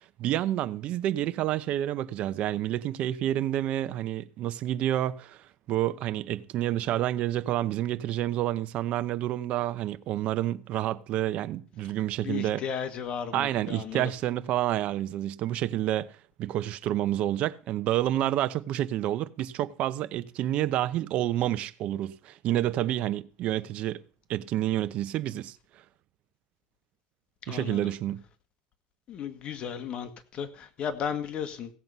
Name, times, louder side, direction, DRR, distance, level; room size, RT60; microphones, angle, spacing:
voice 1, 0.2-12.6 13.3-16.1 16.4-24.0 24.3-25.6 27.5-28.2, right 13 dB, 55° right, 0.9 m, -29 dB
voice 2, 12.2-14.1 27.4-27.9 29.1-31.7, left 7 dB, 45° left, 1.7 m, -35 dB
16.5 x 7.7 x 5.5 m
supercardioid pair, 120°, 2 cm